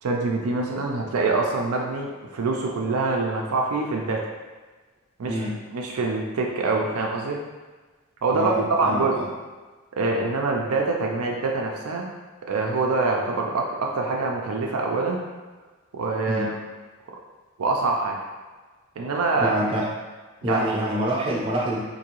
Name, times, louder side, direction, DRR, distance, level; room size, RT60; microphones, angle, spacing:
voice 1, 0.0-4.3 5.2-5.4 5.7-7.4 8.2-8.5 8.8-9.2 9.9-12.1 12.5-15.2 15.9-16.6 17.6-18.2 19.0-19.6 20.5-20.7, right 3 dB, 75° right, 0 dB, 0.5 m, -25 dB
voice 2, 5.2-5.6 8.3-9.3 16.3-16.5 19.4-19.9 20.4-21.8, equal, 25° right, -5 dB, 0.6 m, -26 dB
3.8 x 2.6 x 2.9 m, 1.3 s
head